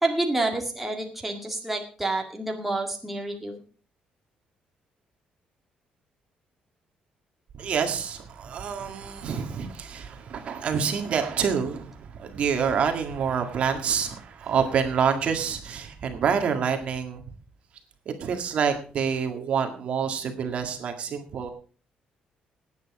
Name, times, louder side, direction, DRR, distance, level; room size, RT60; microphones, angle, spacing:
voice 1, 0.0-3.6, right 2 dB, 5° right, 1 dB, 2.1 m, -28 dB
voice 2, 7.5-17.2 18.1-21.5, right 7 dB, 45° right, 6 dB, 1.9 m, -27 dB
18.0 x 8.8 x 4.8 m, 0.39 s
cardioid pair, 180°, 3 cm